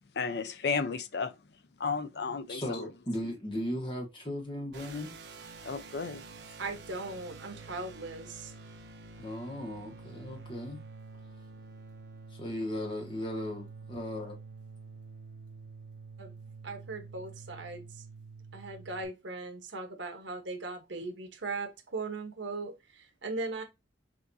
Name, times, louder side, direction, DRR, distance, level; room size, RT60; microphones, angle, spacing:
voice 1, 0.1-1.4 1.8-2.9 5.6-6.3, left 5 dB, 60° left, 0.5 m, -33 dB
voice 2, 2.5-5.1 9.2-10.8 12.3-14.4, left 1 dB, 30° left, 1.1 m, -37 dB
sound 1, 4.7-19.1, right 4 dB, 65° right, 0.9 m, -48 dB
voice 3, 6.6-8.5 16.2-16.3 16.6-18.0 18.5-23.6, right 3 dB, 80° right, 1.1 m, -39 dB
6.1 x 2.6 x 2.7 m
head